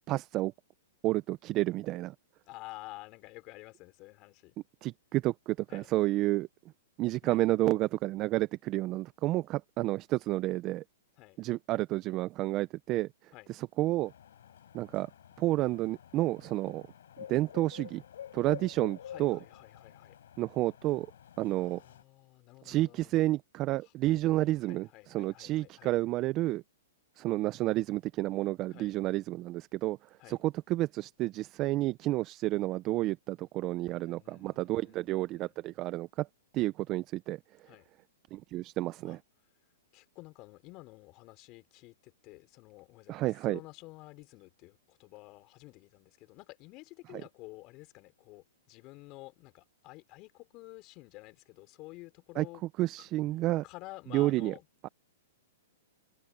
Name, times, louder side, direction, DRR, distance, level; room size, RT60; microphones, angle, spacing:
voice 1, 0.1-0.5 1.0-2.1 4.8-6.5 7.0-10.8 11.4-13.1 13.5-14.1 14.7-15.1 15.4-16.8 17.3-18.0 18.3-19.4 20.4-21.1 21.4-21.8 22.6-26.6 27.2-30.0 30.3-36.3 36.5-37.4 38.3-39.2 43.1-43.6 52.4-52.5 52.8-53.6 54.1-54.5 54.8-54.9, right 17 dB, 35° right, 0.8 m, -30 dB
voice 2, 2.5-4.6 5.7-5.9 7.2-7.4 11.2-11.4 13.3-13.5 19.0-20.2 21.5-23.3 23.8-25.9 28.7-28.9 30.2-30.4 33.9-35.5 37.7-37.9 39.1-39.2 39.9-52.6 53.0-53.1 53.6-54.7, left 22 dB, 40° left, 5.5 m, -51 dB
sound 1, 14.1-22.0, left 10 dB, 70° left, 7.2 m, -49 dB
hypercardioid pair, 125°, 0 cm